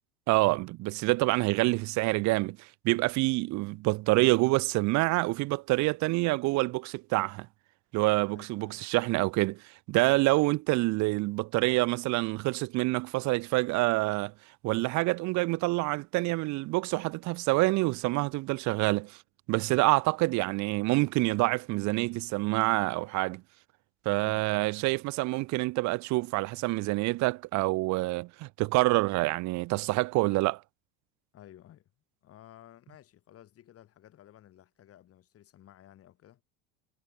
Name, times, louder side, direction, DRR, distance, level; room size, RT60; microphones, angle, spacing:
voice 1, 0.3-7.5 7.9-14.3 14.6-19.2 19.5-23.4 24.0-30.6, right 22 dB, 65° right, 1.2 m, -27 dB
voice 2, 8.3-8.9 24.2-24.7 31.3-31.9 32.2-36.4, left 12 dB, 50° left, 7.7 m, -55 dB
supercardioid pair, 110°, 31 cm